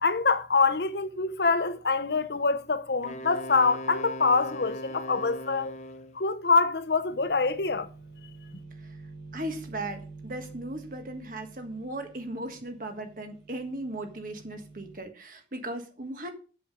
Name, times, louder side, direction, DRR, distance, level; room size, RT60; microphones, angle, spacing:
voice 1, 0.0-5.7 6.1-7.9, left 4 dB, 70° left, 0.8 m, -25 dB
Wind instrument woodwind instrument, 3.0-6.2, equal, 40° left, 0.9 m, -39 dB
sound 1, 7.1-15.0, right 3 dB, 80° right, 3.8 m, -48 dB
voice 2, 9.3-16.3, right 1 dB, 50° right, 1.5 m, -37 dB
7.5 x 7.4 x 5.2 m
head